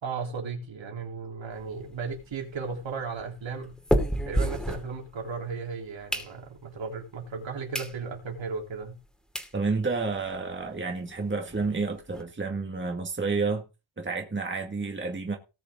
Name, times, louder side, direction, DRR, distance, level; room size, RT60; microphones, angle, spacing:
voice 1, 0.0-3.8 4.2-9.0, right 5 dB, 70° right, 3.7 m, -35 dB
sound 1, 1.5-5.5 5.8-6.8 7.3-7.4 7.7-8.0 8.4-8.5 9.0-9.1 9.3-9.5 10.0-10.1 10.2-10.4 10.7-10.8 11.1-12.2, equal, ahead, 2.5 m, -31 dB
voice 2, 9.5-13.6 14.0-15.4, right 4 dB, 25° right, 2.0 m, -30 dB
18.5 x 6.6 x 3.7 m
wide cardioid pair, 125°, 47 cm